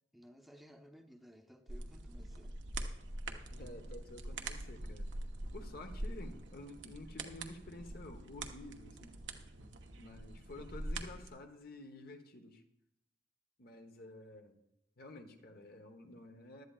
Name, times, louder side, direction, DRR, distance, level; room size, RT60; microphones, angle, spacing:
voice 1, 0.1-2.6, equal, ahead, 5 dB, 0.8 m, -58 dB
sound 1, 1.7-11.3, right 2 dB, 90° right, 1.0 m, -44 dB
voice 2, 3.5-5.1 5.5-9.1 9.9-12.6 13.6-14.6 15.0-16.6, left 2 dB, 55° left, 5 dB, 1.1 m, -51 dB
16.0 x 11.5 x 2.4 m, 0.84 s
head